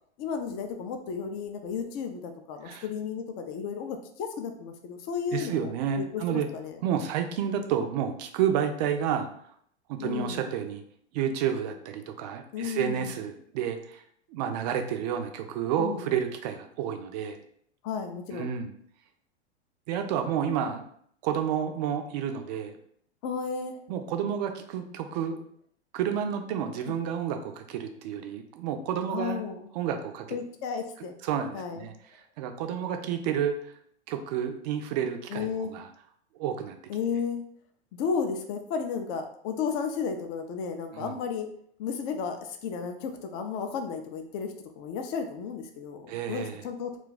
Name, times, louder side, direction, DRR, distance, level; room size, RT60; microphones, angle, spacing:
voice 1, 0.2-5.7 6.0-6.8 10.0-10.4 12.5-13.1 15.8-16.1 17.8-18.5 23.2-23.8 29.1-29.7 30.3-31.1 31.5-31.9 35.3-35.7 36.9-37.4 37.9-41.5 41.8-47.0, left 6 dB, 35° left, 5 dB, 0.4 m, -33 dB
voice 2, 5.3-6.5 6.8-9.3 9.9-10.8 11.1-14.0 14.3-17.4 18.3-18.7 19.9-20.8 21.2-22.8 23.9-25.4 25.9-29.4 29.7-30.3 31.2-33.7 34.1-35.9 36.3-36.8 40.9-41.1 46.1-46.7, right 8 dB, 40° right, 6 dB, 0.4 m, -30 dB
2.4 x 2.3 x 3.8 m, 0.65 s
hypercardioid pair, 105°, 34 cm